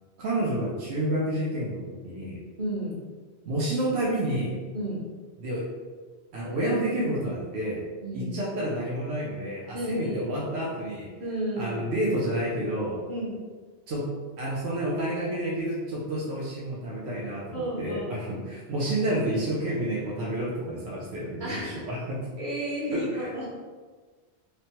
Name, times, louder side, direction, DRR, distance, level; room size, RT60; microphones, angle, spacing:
voice 1, 0.2-2.4 3.4-4.6 5.4-5.7 6.3-7.8 8.1-11.1 11.6-13.0 13.9-22.3 22.9-23.4, right 1 dB, 85° right, -5 dB, 0.9 m, -29 dB
voice 2, 2.6-3.0 4.7-5.0 8.0-8.3 9.7-10.3 11.2-11.7 13.1-13.4 17.5-18.1 21.4-21.8 22.4-23.4, right 1 dB, 50° right, -8 dB, 1.2 m, -32 dB
3.1 x 2.1 x 2.7 m, 1.4 s
omnidirectional pair, 1.1 m